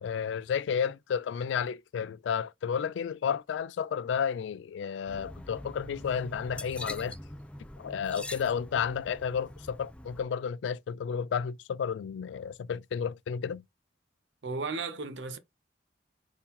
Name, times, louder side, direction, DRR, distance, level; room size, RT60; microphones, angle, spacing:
voice 1, 0.0-7.2 7.8-13.6, left 7 dB, 80° left, 0.3 m, -32 dB
sound 1, 5.1-10.2, left 1 dB, 5° left, 0.4 m, -43 dB
voice 2, 14.4-15.4, right 4 dB, 75° right, 0.6 m, -34 dB
3.8 x 2.7 x 4.2 m
head